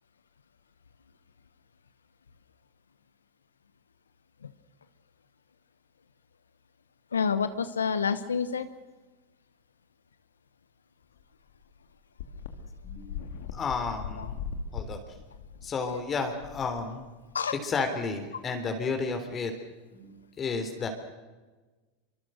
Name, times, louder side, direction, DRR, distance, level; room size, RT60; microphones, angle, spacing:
voice 1, 7.1-8.7 14.2-14.3 15.9-16.0 17.3-17.6, left 6 dB, 90° left, 12 dB, 1.0 m, -28 dB
sound 1, 11.2-11.3 11.5-11.6 12.2-17.4, left 6 dB, 70° left, 2.6 m, -39 dB
voice 2, 12.8-13.3 13.5-14.3 14.7-15.0 15.6-17.1 17.6-19.5 19.9-20.9, left 4 dB, 30° left, 6 dB, 3.7 m, -32 dB
25.0 x 24.5 x 6.5 m, 1.2 s
hypercardioid pair, 95°, 0 cm